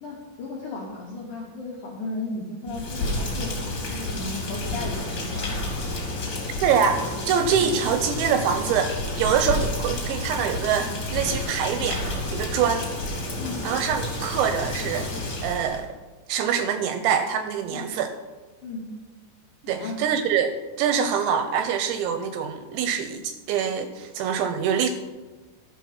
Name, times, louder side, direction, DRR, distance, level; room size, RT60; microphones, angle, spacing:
voice 1, 0.0-5.5 7.6-7.7 9.5-9.6 13.4-13.6 17.7-17.9 18.6-18.8 19.7-20.0 21.0-21.1, left 2 dB, 85° left, -3 dB, 1.7 m, -35 dB
Rain, 2.6-15.8, left 2 dB, 35° left, 2.5 m, -30 dB
voice 2, 6.6-12.9 13.6-15.1 15.4-15.9 16.3-18.1 19.6-24.9, right 7 dB, 85° right, 8 dB, 2.7 m, -25 dB
13.0 x 6.0 x 5.9 m, 1.3 s
omnidirectional pair, 5.6 m